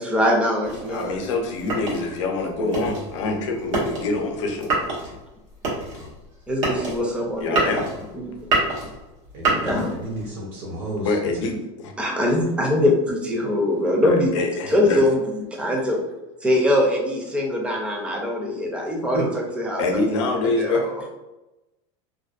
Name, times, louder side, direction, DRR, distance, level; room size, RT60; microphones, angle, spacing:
voice 1, 0.0-1.2 2.6-2.8 6.5-7.8 8.1-8.3 9.5-9.9 12.0-14.3 14.7-15.3 15.6-16.0 16.4-19.8 20.6-20.9, left 1 dB, 5° right, -1 dB, 0.4 m, -22 dB
sound 1, 0.6-10.3, right 3 dB, 90° right, 1.1 m, -28 dB
voice 2, 0.9-4.7 7.4-7.8 11.0-11.9 14.0-15.2 19.8-21.2, left 3 dB, 85° left, 3 dB, 0.5 m, -25 dB
voice 3, 9.3-11.5 19.1-19.3, right 1 dB, 60° right, -4 dB, 0.6 m, -31 dB
2.5 x 2.1 x 2.3 m, 1.0 s
supercardioid pair, 150°, 15 cm